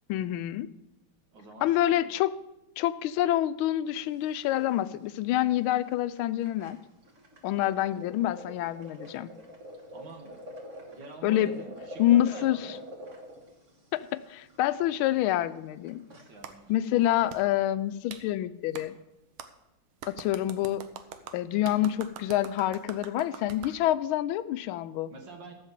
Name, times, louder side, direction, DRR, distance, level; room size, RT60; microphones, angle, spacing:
voice 1, 0.1-0.7 1.6-2.3 2.8-6.8 7.4-9.3 11.2-11.5 12.0-12.6 13.9-16.0 16.7-18.9 20.1-20.8 21.3-25.1, left 13 dB, 80° left, 13 dB, 1.4 m, -27 dB
voice 2, 1.3-2.1 9.9-10.5 10.9-12.8 16.1-17.1 25.1-25.5, right 3 dB, 60° right, 3 dB, 2.1 m, -47 dB
sound 1, 4.1-4.5 4.8-4.9 5.2-5.4 5.9-6.0 6.2-17.3, equal, 40° right, 1.6 m, -45 dB
Clapping, 16.4-16.5 17.3-17.4 18.1-18.2 18.7-18.9 19.4-19.5 20.0-23.8, right 8 dB, 85° right, 1.7 m, -43 dB
14.5 x 5.6 x 7.4 m, 0.91 s
omnidirectional pair, 2.3 m